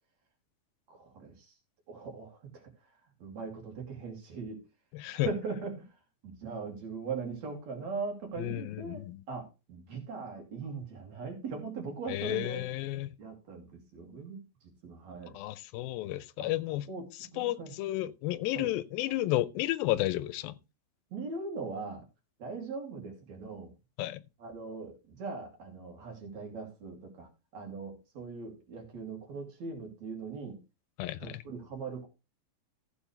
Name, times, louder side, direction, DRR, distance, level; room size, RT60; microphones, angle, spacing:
voice 1, 0.9-1.6 1.9-4.7 5.1-12.6 13.2-15.4 16.4-16.5 16.9-17.7 18.5-18.7 21.1-22.1 22.4-23.7 24.4-30.6 31.2-32.1, right 4 dB, 50° right, 3.8 m, -40 dB
voice 2, 4.9-5.3 8.4-9.2 12.1-13.1 15.3-16.9 17.4-20.6 24.0-24.2 31.0-31.4, left 16 dB, 85° left, 2.4 m, -32 dB
14.5 x 7.1 x 3.2 m
omnidirectional pair, 4.1 m